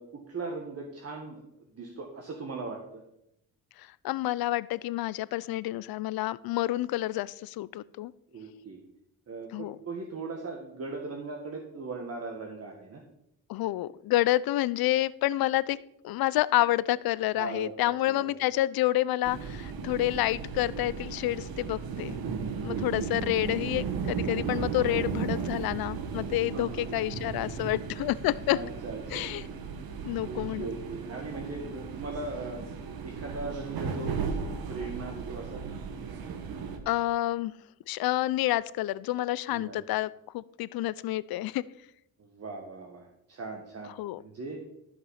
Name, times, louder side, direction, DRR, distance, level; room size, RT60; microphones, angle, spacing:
voice 1, 0.0-1.4 1.7-3.0 8.3-8.8 9.3-13.0 17.4-17.7 18.1-18.3 22.4-23.2 26.5-26.8 28.5-29.6 30.2-32.6 33.0-35.6 39.5-39.8 42.2-44.6, right 3 dB, 45° right, 1 dB, 1.7 m, -39 dB
voice 2, 3.8-8.1 9.5-9.8 13.5-15.8 16.0-22.2 22.6-28.6 29.1-29.4 30.0-30.7 36.9-37.5 37.9-41.6 44.0-44.2, left 15 dB, 80° left, 19 dB, 0.5 m, -29 dB
sound 1, 19.2-36.8, right 5 dB, 85° right, 1.6 m, -35 dB
13.5 x 6.1 x 5.7 m, 0.79 s
cardioid pair, 115°, 35 cm